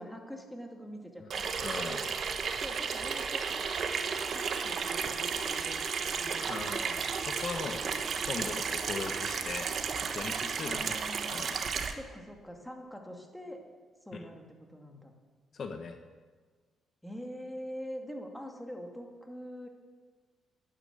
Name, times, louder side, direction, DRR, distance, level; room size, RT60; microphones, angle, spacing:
voice 1, 0.0-1.5 1.8-1.9 2.6-6.4 10.6-11.4 11.9-13.6 14.0-14.4 14.7-15.1 17.0-19.7, equal, 5° left, 2 dB, 2.3 m, -44 dB
Water tap faucet / Sink (filling or washing), 1.3-11.9, right 6 dB, 55° right, 1.2 m, -33 dB
voice 2, 1.6-2.0 6.5-7.9 8.2-9.7 10.1-10.9 11.3-11.6 14.1-14.2 15.5-16.0, left 5 dB, 50° left, 6 dB, 1.1 m, -39 dB
12.0 x 10.0 x 8.1 m, 1.5 s
cardioid pair, 90°, 0 cm